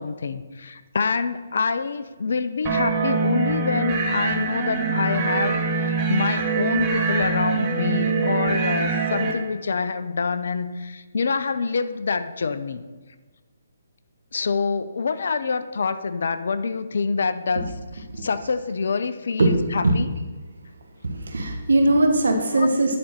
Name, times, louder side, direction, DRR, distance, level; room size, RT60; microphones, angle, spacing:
voice 1, 0.0-12.9 14.3-20.1 22.6-22.7, left 4 dB, 60° left, 12 dB, 0.4 m, -26 dB
sound 1, 2.6-9.3, right 4 dB, 25° right, 1.0 m, -24 dB
voice 2, 21.0-23.0, right 2 dB, 70° right, 4 dB, 1.2 m, -20 dB
9.6 x 4.0 x 4.4 m, 1.4 s
figure-of-eight pair, 140°, 0 cm